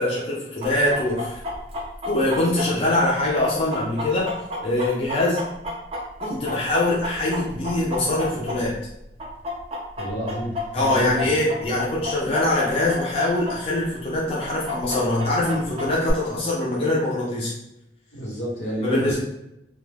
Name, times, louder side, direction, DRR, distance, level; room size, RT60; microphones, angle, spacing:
voice 1, 0.0-1.4 2.0-4.3 4.6-5.4 6.2-8.8 10.7-17.5 18.8-19.2, left 1 dB, 30° left, -5 dB, 0.5 m, -23 dB
Chicken rooster, 0.6-8.9 9.2-13.5 13.8-13.9 14.4-16.1, left 2 dB, 35° right, 0.5 m, -31 dB
voice 2, 10.0-11.4 11.7-12.0 18.1-19.2, equal, 85° left, -4 dB, 1.1 m, -30 dB
2.2 x 2.1 x 3.2 m, 0.85 s
head